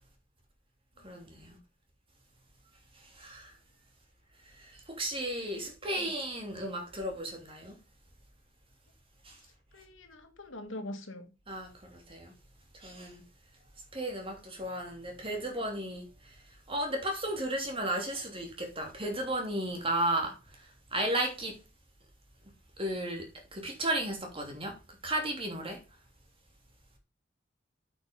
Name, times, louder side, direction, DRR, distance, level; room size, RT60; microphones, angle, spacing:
voice 1, 1.0-1.6 2.9-3.6 4.4-7.8 9.2-9.4 11.5-12.3 12.7-13.2 13.9-21.6 22.8-24.8 25.0-25.8, right 1 dB, 30° right, 3.0 m, -34 dB
voice 2, 9.7-11.3, left 1 dB, 80° left, 2.0 m, -43 dB
8.7 x 6.1 x 5.2 m
head